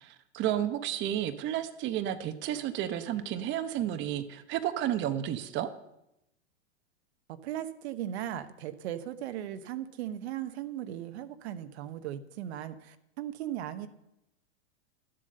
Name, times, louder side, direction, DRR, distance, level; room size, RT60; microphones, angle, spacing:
voice 1, 0.0-5.7, right 11 dB, 30° right, 8 dB, 0.9 m, -32 dB
voice 2, 7.4-13.9, right 11 dB, 60° right, 10 dB, 1.0 m, -37 dB
12.0 x 7.8 x 6.6 m, 0.84 s
hypercardioid pair, 120°, 37 cm